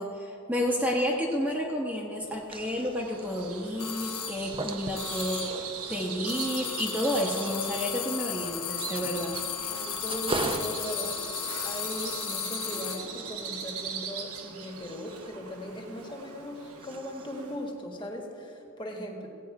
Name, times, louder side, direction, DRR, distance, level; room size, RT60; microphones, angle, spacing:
voice 1, 0.0-9.7, equal, 5° right, -2 dB, 1.0 m, -31 dB
sound 1, 2.2-16.5 16.8-17.4, right 2 dB, 25° right, 0.6 m, -41 dB
Bird vocalization bird call bird song, 2.9-17.7, right 6 dB, 70° right, 1.1 m, -41 dB
sound 2, 3.8-4.5 5.0-5.7 6.3-13.1, left 9 dB, 75° left, 1.1 m, -35 dB
voice 2, 9.7-19.3, equal, 20° left, 1 dB, 1.5 m, -39 dB
16.5 x 8.5 x 4.7 m, 2.9 s
head